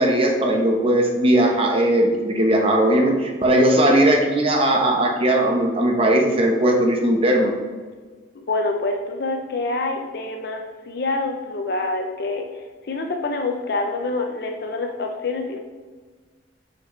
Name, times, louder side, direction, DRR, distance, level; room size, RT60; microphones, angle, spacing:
voice 1, 0.0-7.5, right 1 dB, 30° right, 1 dB, 0.9 m, -18 dB
voice 2, 8.3-12.5 12.8-15.6, left 2 dB, 60° left, 3 dB, 0.6 m, -26 dB
6.0 x 5.9 x 3.2 m, 1.4 s
head